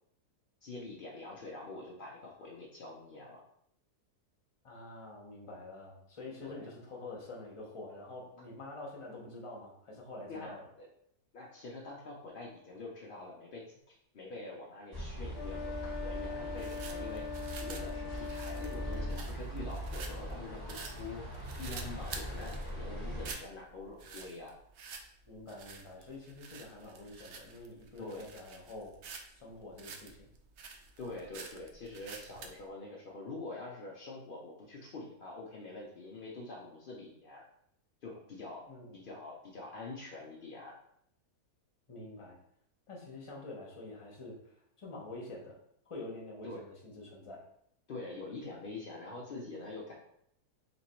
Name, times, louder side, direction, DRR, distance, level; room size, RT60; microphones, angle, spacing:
voice 1, 0.6-3.4 6.4-6.7 10.3-10.9 11.3-17.2 17.6-21.3 21.6-24.5 28.0-28.3 31.0-37.4 38.0-38.7 38.9-40.7 46.4-46.6 47.9-49.9, left 3 dB, 70° left, -3 dB, 0.5 m, -45 dB
voice 2, 4.6-10.6 25.3-29.0 29.3-30.3 38.7-39.0 41.9-42.4 42.9-44.4 44.8-45.6 45.9-47.4, left 2 dB, 30° left, -2 dB, 0.7 m, -47 dB
sound 1, 14.9-23.3, equal, 15° right, 1.1 m, -41 dB
sound 2, 15.3-19.3, left 5 dB, 85° left, 1.3 m, -42 dB
sound 3, 15.4-32.6, right 5 dB, 70° right, 0.6 m, -49 dB
3.2 x 3.0 x 4.2 m, 0.72 s
omnidirectional pair, 1.7 m